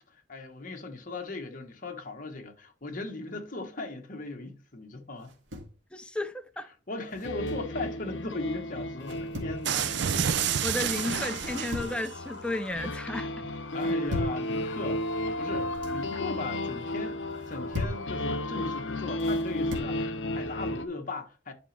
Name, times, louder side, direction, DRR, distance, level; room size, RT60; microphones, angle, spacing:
voice 1, 0.0-5.3 6.9-9.9 13.7-17.2 17.5-21.5, left 2 dB, 45° left, 1.3 m, -38 dB
sound 1, 5.2-5.8 7.1-7.7 9.0-9.6 11.3-12.1 12.4-12.9 13.8-14.4 15.5-16.0 17.3-18.1 19.2-20.0, left 2 dB, 80° right, 2.3 m, -38 dB
voice 2, 5.9-6.7 10.6-13.5, left 2 dB, 5° left, 0.6 m, -33 dB
sound 2, 7.2-20.8, left 1 dB, 75° left, 0.8 m, -33 dB
sound 3, 9.6-12.1, right 8 dB, 65° right, 0.5 m, -29 dB
10.0 x 5.1 x 3.3 m
head